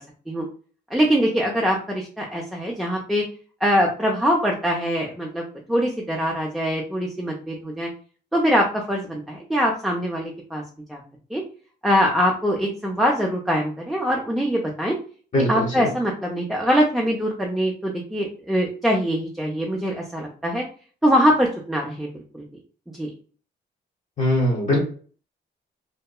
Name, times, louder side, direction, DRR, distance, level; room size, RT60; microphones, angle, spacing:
voice 1, 0.9-3.2 3.6-7.9 8.3-10.6 10.9-11.0 11.3-11.4 11.8-14.9 15.5-20.6 21.0-22.4 23.0-23.1, equal, ahead, -1 dB, 0.5 m, -23 dB
voice 2, 15.3-15.9 24.2-24.8, left 1 dB, 40° left, -3 dB, 0.9 m, -21 dB
2.8 x 2.1 x 2.2 m, 0.42 s
cardioid pair, 80°, 19 cm